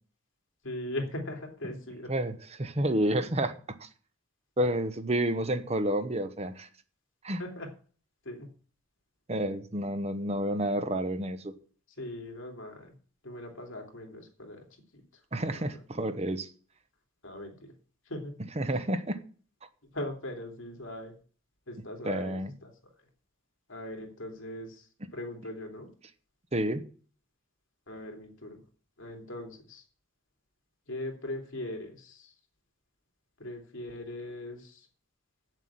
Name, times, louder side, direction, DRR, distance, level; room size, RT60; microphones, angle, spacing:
voice 1, 0.6-2.1 7.4-7.7 8.2-8.5 12.0-12.9 13.2-14.6 15.5-15.6 17.2-17.5 18.1-18.3 19.9-21.1 21.7-22.7 23.7-24.8 25.1-25.9 27.9-28.6 29.0-29.8 30.9-32.3 33.4-34.8, left 1 dB, 75° left, 2.9 m, -39 dB
voice 2, 2.1-3.9 4.6-6.7 7.2-7.4 9.3-11.5 15.3-16.5 18.6-19.2 22.0-22.5 26.5-26.8, right 1 dB, 30° right, 0.9 m, -30 dB
8.3 x 7.6 x 8.7 m
head